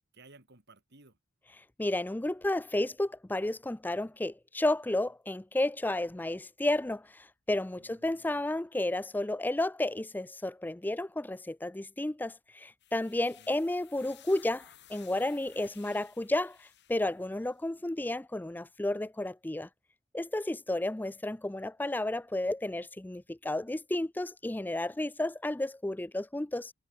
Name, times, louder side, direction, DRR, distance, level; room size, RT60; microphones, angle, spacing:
voice 1, 0.1-1.2 7.8-8.4 13.1-13.6, right 2 dB, 55° right, 7.0 m, -58 dB
voice 2, 1.5-19.7 20.1-26.7, left 1 dB, 10° left, 0.4 m, -32 dB
sound 1, 12.8-17.5, left 11 dB, 60° left, 7.0 m, -57 dB
head